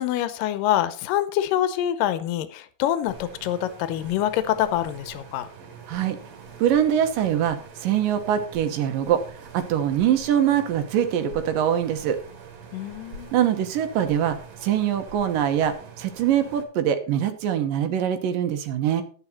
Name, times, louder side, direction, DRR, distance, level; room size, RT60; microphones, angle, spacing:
voice 1, 0.0-5.5 12.7-13.4, left 12 dB, 85° left, 13 dB, 2.4 m, -25 dB
sound 1, 3.1-16.6, right 5 dB, 55° right, 2.6 m, -44 dB
voice 2, 6.6-9.2 9.5-12.2 13.3-19.0, right 10 dB, 75° right, 8 dB, 2.7 m, -23 dB
11.0 x 9.1 x 4.3 m, 0.41 s
omnidirectional pair, 4.0 m